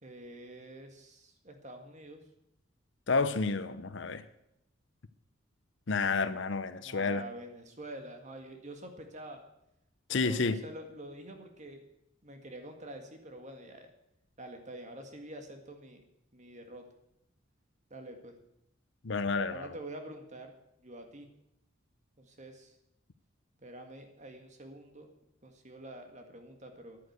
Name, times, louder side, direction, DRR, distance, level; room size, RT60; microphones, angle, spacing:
voice 1, 0.0-2.2 6.8-9.4 10.1-11.8 12.2-13.9 14.4-16.0 16.3-16.8 17.9-18.4 19.5-20.5 20.8-21.3 22.2-22.8 23.6-25.1 25.4-27.0, right 1 dB, 35° right, 5 dB, 1.9 m, -47 dB
voice 2, 3.1-4.2 5.9-7.2 10.1-10.6 19.0-19.7, left 4 dB, 65° left, 13 dB, 0.7 m, -30 dB
10.5 x 9.5 x 8.1 m, 0.82 s
head